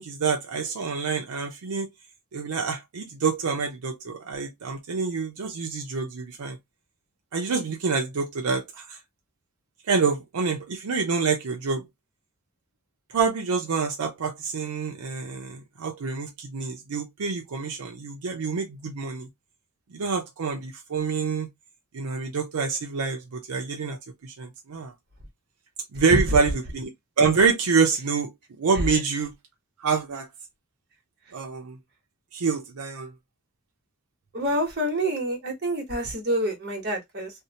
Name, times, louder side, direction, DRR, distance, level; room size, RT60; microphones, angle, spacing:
voice 1, 0.0-1.9 2.3-6.6 7.3-9.0 9.9-11.8 13.1-19.3 19.9-21.5 21.9-24.0 24.2-24.9 25.9-26.9 27.2-28.3 28.6-29.3 29.8-30.3 31.3-31.8 32.3-33.1, right 5 dB, 80° right, 0.5 m, -26 dB
voice 2, 34.3-37.3, right 1 dB, 45° right, 1.0 m, -27 dB
2.7 x 2.0 x 2.7 m
head